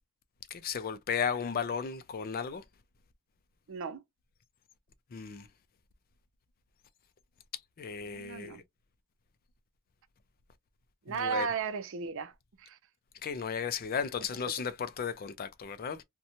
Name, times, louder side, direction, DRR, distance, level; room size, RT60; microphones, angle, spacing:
voice 1, 0.5-2.6 5.1-5.5 7.8-8.6 11.1-11.5 13.2-16.0, left 6 dB, 45° left, 0.4 m, -35 dB
voice 2, 3.7-4.0 8.1-8.6 11.1-12.3 12.6-12.8, right 6 dB, 60° right, 0.5 m, -35 dB
2.7 x 2.2 x 2.8 m
head